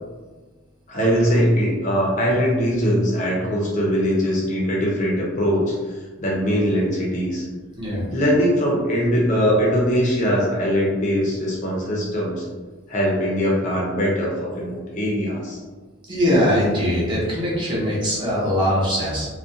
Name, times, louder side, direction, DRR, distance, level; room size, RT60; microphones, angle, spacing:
voice 1, 0.9-5.7 6.2-7.4 8.1-12.4 12.9-15.6, equal, 35° left, -4 dB, 0.5 m, -21 dB
voice 2, 16.1-19.3, equal, 25° right, -7 dB, 0.7 m, -21 dB
2.4 x 2.1 x 2.6 m, 1.3 s
head